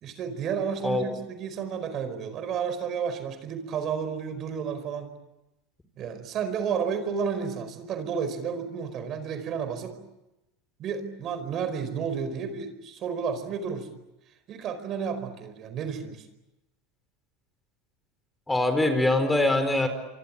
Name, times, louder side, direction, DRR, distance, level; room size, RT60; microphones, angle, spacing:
voice 1, 0.0-5.1 6.0-10.0 10.8-13.9 14.5-16.3, right 6 dB, 45° right, 10 dB, 4.8 m, -31 dB
voice 2, 18.5-19.9, left 2 dB, 10° left, 8 dB, 4.6 m, -23 dB
27.0 x 24.0 x 8.8 m, 0.95 s
hypercardioid pair, 105°, 0 cm